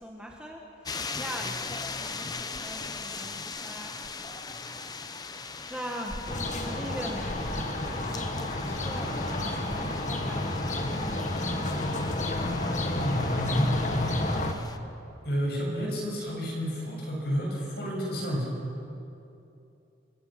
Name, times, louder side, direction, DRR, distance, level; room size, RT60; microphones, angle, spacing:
voice 1, 0.0-4.1 4.5-4.7 5.7-11.1, equal, 5° right, -1 dB, 1.6 m, -41 dB
sound 1, 0.8-14.8, left 4 dB, 20° left, 0.7 m, -40 dB
sound 2, 6.3-14.5, left 1 dB, 40° left, 1.4 m, -30 dB
voice 2, 12.9-13.7 15.2-18.5, equal, 55° left, -2 dB, 7.0 m, -31 dB
28.5 x 16.0 x 6.0 m, 2.7 s
head